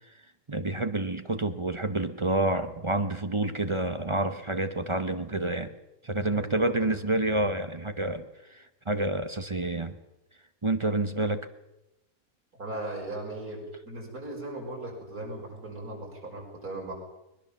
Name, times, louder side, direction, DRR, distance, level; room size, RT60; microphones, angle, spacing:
voice 1, 0.5-5.7 6.0-8.2 8.5-10.0 10.6-11.5, right 2 dB, 25° right, 10 dB, 0.9 m, -28 dB
voice 2, 6.3-6.9 12.6-16.9, right 2 dB, 80° right, -1 dB, 6.3 m, -38 dB
21.0 x 20.0 x 7.1 m, 0.94 s
omnidirectional pair, 1.5 m